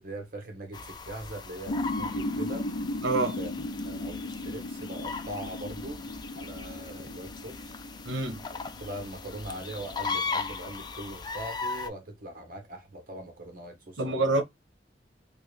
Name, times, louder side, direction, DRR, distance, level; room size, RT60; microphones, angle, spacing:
voice 1, 0.0-2.7 3.4-3.5 3.8-6.0 6.3-7.8 8.5-14.2, right 1 dB, 50° right, 0.8 m, -41 dB
sound 1, 0.7-11.9, left 4 dB, 25° left, 0.3 m, -38 dB
sound 2, 1.7-10.9, left 1 dB, 75° left, 0.6 m, -36 dB
voice 2, 3.0-3.4 8.1-8.4 14.0-14.4, right 2 dB, 80° right, 0.8 m, -26 dB
3.6 x 2.4 x 3.1 m
head